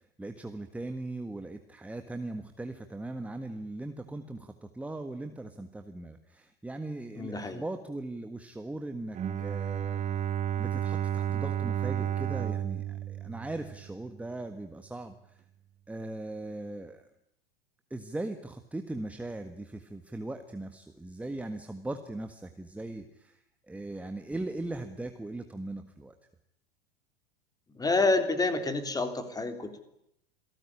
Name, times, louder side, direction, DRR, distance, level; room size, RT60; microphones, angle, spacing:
voice 1, 0.0-10.0 10.6-15.4 15.9-17.1 17.9-26.1, right 2 dB, 5° right, 8 dB, 1.6 m, -39 dB
voice 2, 7.1-7.6 27.7-29.8, left 3 dB, 10° left, 8 dB, 3.5 m, -28 dB
Bowed string instrument, 9.1-14.1, right 10 dB, 25° right, 1.3 m, -32 dB
28.0 x 18.5 x 9.9 m, 0.75 s
figure-of-eight pair, 90°, 30 cm